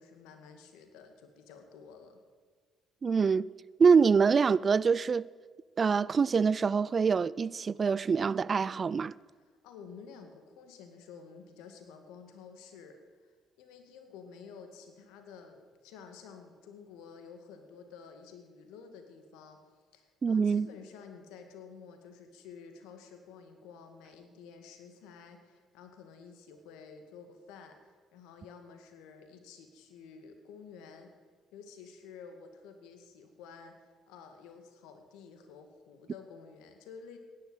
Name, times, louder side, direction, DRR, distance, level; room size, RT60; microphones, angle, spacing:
voice 1, 0.0-2.2 9.6-13.0 13.6-19.6 19.9-31.1 31.5-37.2, left 6 dB, 80° left, 2.1 m, -51 dB
voice 2, 3.0-3.4 3.8-5.3 5.8-9.1 20.2-20.7, right 5 dB, 40° right, 0.4 m, -25 dB
16.0 x 11.0 x 8.2 m
hypercardioid pair, 55°, 0 cm